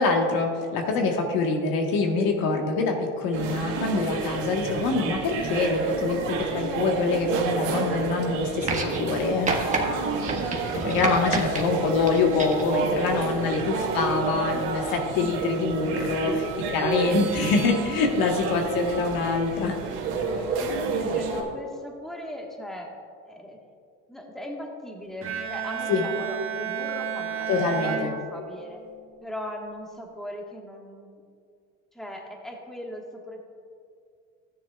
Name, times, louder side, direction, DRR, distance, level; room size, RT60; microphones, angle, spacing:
voice 1, 0.0-9.5 10.7-16.3 16.7-19.8 25.9-26.1 27.5-28.1, left 3 dB, 70° left, 2 dB, 1.4 m, -25 dB
sound 1, 3.3-21.4, right 4 dB, 85° right, 1.6 m, -30 dB
sound 2, 8.6-9.2 9.5-9.8 10.3-11.6 12.1-12.7 13.7-13.8, right 3 dB, 20° right, 1.4 m, -29 dB
voice 2, 10.8-11.7 13.0-13.7 15.1-15.5 16.0-16.9 20.3-22.9 23.3-23.6 24.1-28.8 29.2-31.2 31.9-33.4, equal, ahead, 0 dB, 1.4 m, -39 dB
Bowed string instrument, 25.2-28.9, right 7 dB, 35° right, 1.5 m, -32 dB
13.0 x 9.9 x 2.4 m, 2.2 s
supercardioid pair, 100°, 36 cm